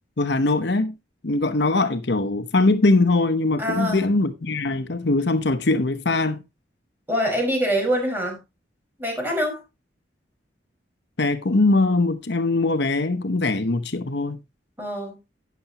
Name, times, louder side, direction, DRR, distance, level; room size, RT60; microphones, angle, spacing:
voice 1, 0.2-0.9 1.2-6.4 11.2-14.4, left 2 dB, 70° left, 0.9 m, -21 dB
voice 2, 3.6-4.0 7.1-8.4 9.0-9.6 14.8-15.2, equal, 10° right, 5.2 m, -24 dB
11.5 x 9.4 x 3.0 m
head